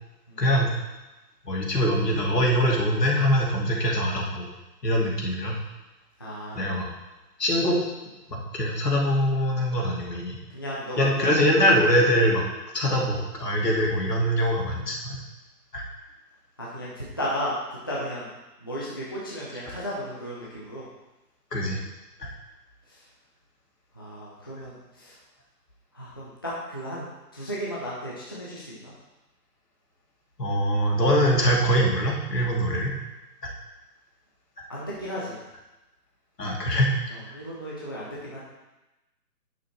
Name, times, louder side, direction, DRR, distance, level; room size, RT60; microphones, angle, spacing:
voice 1, 0.4-0.7 1.4-4.5 4.8-5.6 6.5-6.9 7.4-7.8 8.3-10.4 11.0-12.4 12.7-15.2 15.7-15.8 19.6-19.7 21.5-21.8 22.2-22.3 30.4-33.0 33.4-33.5 36.4-37.0, equal, 75° left, -1 dB, 2.6 m, -23 dB
voice 2, 6.2-6.8 10.5-11.3 12.9-13.1 16.6-17.5 17.9-18.3 18.6-20.8 24.0-25.1 25.9-28.9 34.7-35.4 37.3-38.4, equal, 15° left, -7 dB, 0.6 m, -34 dB
8.6 x 6.8 x 4.4 m, 1.0 s
figure-of-eight pair, 155°, 49 cm